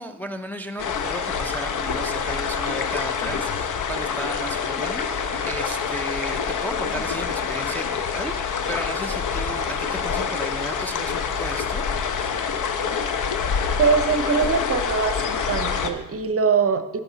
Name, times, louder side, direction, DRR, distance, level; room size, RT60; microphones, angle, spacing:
voice 1, 0.0-11.9, right 1 dB, 5° left, 4 dB, 0.6 m, -34 dB
sound 1, 0.8-15.9, left 6 dB, 50° left, 0.9 m, -26 dB
voice 2, 13.8-15.2 15.5-17.0, right 5 dB, 35° right, 10 dB, 0.9 m, -22 dB
10.5 x 8.0 x 4.0 m, 0.97 s
hypercardioid pair, 60°, 38 cm